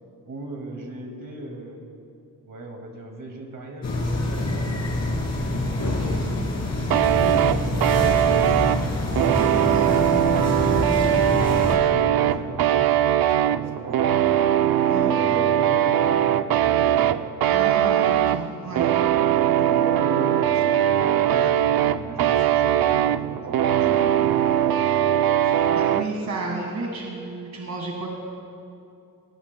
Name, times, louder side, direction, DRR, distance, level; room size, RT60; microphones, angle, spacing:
voice 1, 0.3-1.8 2.5-4.7 5.5-6.2 6.8-8.8 11.6-14.2 14.8-17.4 19.3-23.4 23.7-24.6, right 2 dB, 65° right, 1 dB, 2.2 m, -37 dB
sound 1, 3.8-11.8, left 2 dB, 50° left, 2.4 m, -26 dB
voice 2, 5.8-6.3 9.1-11.2 14.9-15.1 17.5-18.9 25.7-28.1, right 3 dB, 50° right, -2 dB, 1.7 m, -32 dB
sound 2, 6.9-26.1, right 11 dB, 85° right, 0.5 m, -21 dB
21.5 x 18.5 x 2.2 m, 2.5 s
wide cardioid pair, 150°, 35 cm